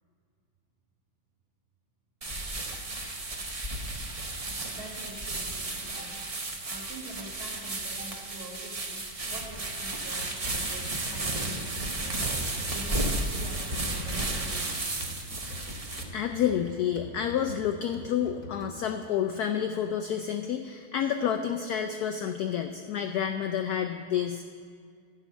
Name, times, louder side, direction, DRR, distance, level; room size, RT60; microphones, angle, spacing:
sound 1, 2.2-16.0, right 2 dB, 65° right, 0.3 m, -33 dB
voice 1, 4.7-6.2 6.6-9.0 9.3-12.3 12.7-14.8 18.9-19.0, right 1 dB, 85° right, -2 dB, 2.7 m, -45 dB
sound 2, 10.2-19.1, equal, 45° left, 1.1 m, -45 dB
voice 2, 16.1-24.4, left 9 dB, 85° left, 6 dB, 0.8 m, -29 dB
11.0 x 5.8 x 8.3 m, 2.1 s
omnidirectional pair, 2.2 m